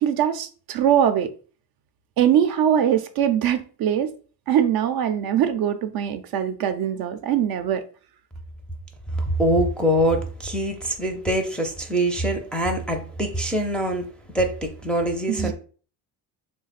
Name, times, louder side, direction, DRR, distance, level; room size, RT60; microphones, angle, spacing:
voice 1, 0.0-1.3 2.2-4.1 4.5-7.8 15.3-15.5, right 9 dB, 60° right, 9 dB, 0.5 m, -22 dB
voice 2, 9.4-14.0 14.3-15.5, right 1 dB, ahead, 1 dB, 0.4 m, -24 dB
3.2 x 2.2 x 4.0 m, 0.39 s
cardioid pair, 110°, 42 cm